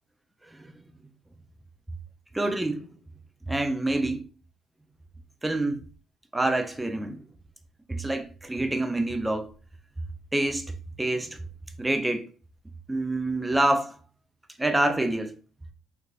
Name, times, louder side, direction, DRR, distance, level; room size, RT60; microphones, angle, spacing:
voice 1, 2.3-2.9 3.5-4.2 5.4-5.8 6.3-7.2 7.9-9.5 10.3-10.7 11.0-11.4 11.8-12.3 12.9-14.0 14.6-15.3, right 2 dB, 10° right, 0.5 m, -26 dB
3.3 x 3.1 x 2.4 m
supercardioid pair, 80°, 0 cm